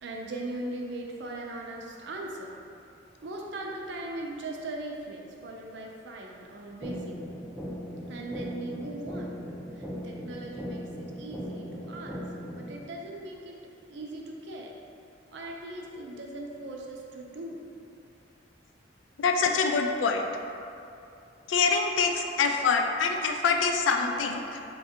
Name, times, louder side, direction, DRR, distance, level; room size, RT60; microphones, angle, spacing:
voice 1, 0.0-2.5 3.2-7.2 8.1-9.4 9.8-12.2 12.6-13.6 13.9-14.7 15.3-17.6, right 2 dB, 65° right, 0 dB, 0.5 m, -39 dB
sound 1, 6.8-12.8, equal, ahead, 0.4 m, -39 dB
voice 2, 19.2-20.2 21.5-24.6, left 5 dB, 85° left, 4 dB, 0.4 m, -25 dB
3.7 x 2.3 x 4.3 m, 2.8 s
head